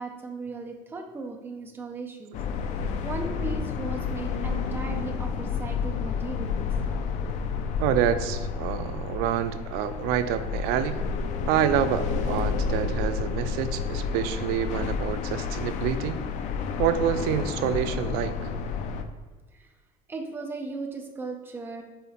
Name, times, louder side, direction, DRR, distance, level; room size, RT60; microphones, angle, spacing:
voice 1, 0.0-2.4 3.0-6.6 19.5-19.7 20.1-21.8, right 3 dB, 15° right, 2 dB, 0.6 m, -37 dB
sound 1, 2.3-19.0, left 5 dB, 50° left, 0.5 m, -30 dB
voice 2, 7.8-11.0 11.5-16.2 16.8-18.5, right 9 dB, 75° right, 11 dB, 0.5 m, -27 dB
5.6 x 4.0 x 4.3 m, 1.5 s
cardioid pair, 175°, 16 cm